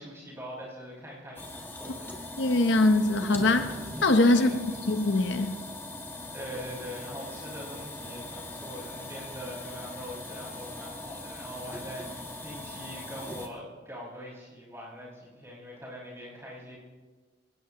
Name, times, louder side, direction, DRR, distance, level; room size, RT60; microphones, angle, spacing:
voice 1, 0.0-2.2 4.3-4.7 6.3-16.8, equal, 15° right, -5 dB, 5.8 m, -43 dB
sound 1, 1.4-13.5, left 1 dB, 10° left, 1.3 m, -40 dB
voice 2, 2.4-3.8 4.0-5.6, left 2 dB, 65° left, 7 dB, 0.8 m, -23 dB
23.0 x 18.0 x 3.0 m, 1.3 s
head